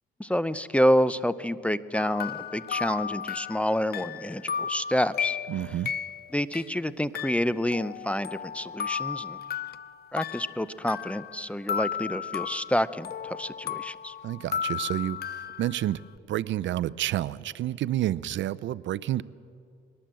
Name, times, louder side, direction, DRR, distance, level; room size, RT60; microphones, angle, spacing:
voice 1, 0.2-5.4 6.3-9.4 10.1-14.1, equal, 5° left, 15 dB, 0.6 m, -28 dB
sound 1, 1.9-6.7 7.1-11.4 11.7-16.2, left 8 dB, 50° left, 0.6 m, -34 dB
voice 2, 5.5-5.9 14.2-16.0 16.3-19.2, right 13 dB, 70° right, 18 dB, 0.5 m, -29 dB
22.5 x 19.0 x 7.6 m, 2.4 s
cardioid pair, 90°, 20 cm